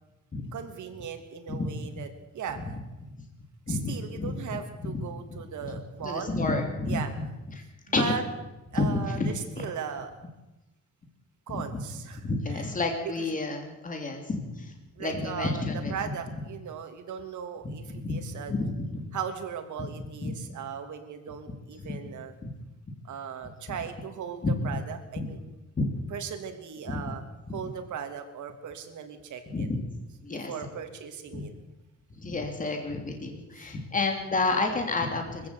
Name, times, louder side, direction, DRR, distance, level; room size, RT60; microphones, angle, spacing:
voice 1, 0.5-2.1 2.3-2.8 3.7-6.4 6.9-7.1 8.0-8.2 8.7-10.1 11.5-12.2 12.5-12.7 15.0-17.8 18.1-18.5 19.1-22.3 23.0-25.4 26.1-27.2 27.5-29.7 30.3-31.5 33.6-33.7, right 7 dB, 80° right, 6 dB, 3.0 m, -37 dB
voice 2, 3.7-5.0 6.0-7.6 7.9-8.1 8.7-9.7 11.5-11.8 12.1-14.7 15.0-15.9 18.0-19.1 19.8-19.9 20.2-20.3 21.8-22.0 22.4-22.5 24.4-24.8 25.2-25.3 25.8-25.9 26.9-27.1 27.5-27.6 29.5-29.8 30.2-30.5 31.3-31.4 32.2-35.5, left 3 dB, 25° left, 4 dB, 2.9 m, -30 dB
23.5 x 15.5 x 8.2 m, 1.0 s
wide cardioid pair, 165°, 29 cm